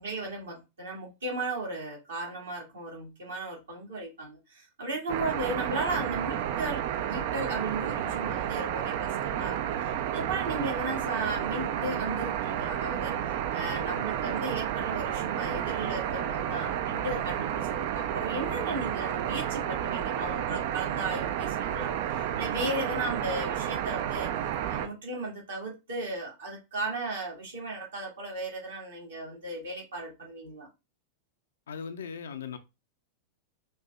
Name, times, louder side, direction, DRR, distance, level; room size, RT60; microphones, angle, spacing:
voice 1, 0.0-24.3 24.7-30.7, right 2 dB, 65° right, 1.8 m, -36 dB
sound 1, 5.1-24.9, right 10 dB, 50° right, 0.4 m, -31 dB
voice 2, 31.7-32.6, left 6 dB, 65° left, 0.5 m, -38 dB
5.4 x 2.6 x 2.3 m
figure-of-eight pair, 90°, 0 cm